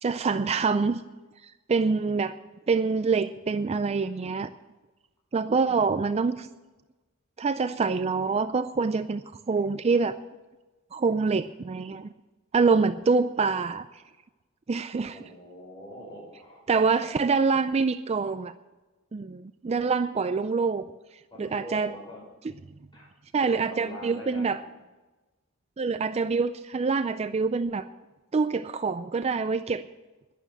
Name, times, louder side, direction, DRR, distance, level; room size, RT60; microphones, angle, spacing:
voice 1, 0.0-1.0 1.4-2.4 2.7-4.5 5.3-6.5 7.4-10.2 10.9-12.1 12.5-13.9 14.7-15.2 16.7-18.5 19.1-20.8 21.4-21.9 23.3-24.6 25.8-27.9 28.3-29.8, right 4 dB, 30° right, 11 dB, 0.4 m, -25 dB
voice 2, 15.1-16.8 21.3-22.2 22.9-23.1 23.4-24.6, left 1 dB, 20° left, -2 dB, 5.7 m, -43 dB
11.0 x 11.0 x 7.8 m, 1.1 s
head